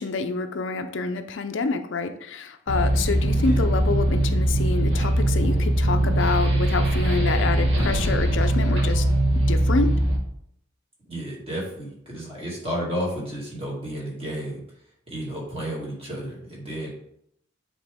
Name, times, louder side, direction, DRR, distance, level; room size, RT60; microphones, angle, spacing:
voice 1, 0.0-9.1 9.5-9.9, left 4 dB, 70° left, 8 dB, 0.5 m, -27 dB
sound 1, 2.7-10.2, right 1 dB, 80° right, 1.4 m, -21 dB
voice 2, 11.1-14.6 15.1-16.9, equal, 30° right, -4 dB, 2.3 m, -32 dB
8.2 x 3.7 x 3.5 m, 0.73 s
head